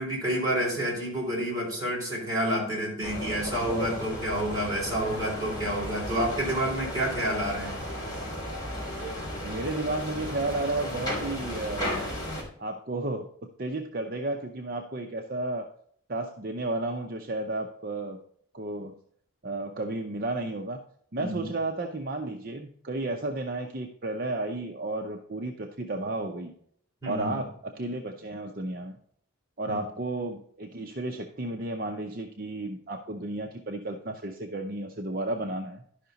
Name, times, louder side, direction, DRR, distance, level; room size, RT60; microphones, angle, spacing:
voice 1, 0.0-7.8 21.2-21.5 27.0-27.4 29.7-29.8, right 1 dB, 15° right, -5 dB, 4.0 m, -29 dB
sound 1, 3.0-12.4, equal, 20° left, 2.8 m, -34 dB
voice 2, 9.4-12.1 12.6-15.7 16.1-18.2 18.5-18.9 19.4-20.8 21.1-26.5 27.1-29.0 29.6-35.8, right 2 dB, 45° right, 4 dB, 0.6 m, -33 dB
11.5 x 5.7 x 4.0 m, 0.63 s
head